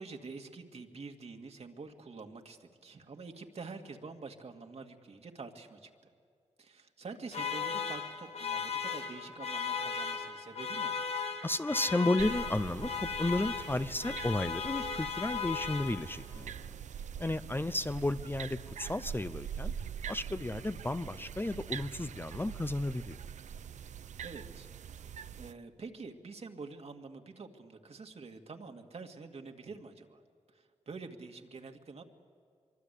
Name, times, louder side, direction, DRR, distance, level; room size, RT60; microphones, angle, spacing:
voice 1, 0.0-5.9 6.6-11.0 24.2-30.2 30.5-32.0, right 4 dB, 60° right, 4 dB, 2.1 m, -47 dB
sound 1, 7.3-16.3, left 6 dB, 60° left, 2.1 m, -37 dB
voice 2, 11.4-16.5 17.2-19.7 20.1-23.2, left 2 dB, 15° left, 12 dB, 0.7 m, -33 dB
sound 2, 12.2-25.5, right 8 dB, 80° right, 0.6 m, -43 dB
24.5 x 23.5 x 8.4 m, 2.2 s
cardioid pair, 70°, 12 cm